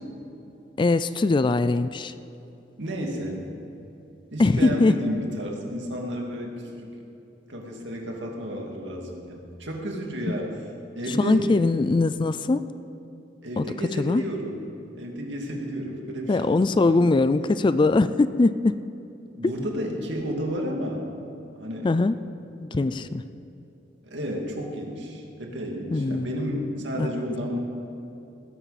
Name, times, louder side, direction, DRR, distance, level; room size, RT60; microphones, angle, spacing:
voice 1, 0.8-2.1 4.4-5.0 11.1-12.7 13.6-13.7 14.0-14.2 16.3-18.7 21.8-22.2 22.6-23.2 25.9-26.6 27.0-27.1, left 3 dB, 25° left, 13 dB, 0.3 m, -21 dB
voice 2, 2.8-3.5 4.3-6.9 7.5-10.5 10.9-11.6 13.4-14.6 14.9-17.1 19.4-21.1 21.6-21.9 22.7-23.1 24.0-27.7, equal, 75° right, 0 dB, 2.3 m, -32 dB
19.5 x 11.5 x 4.2 m, 2.9 s
head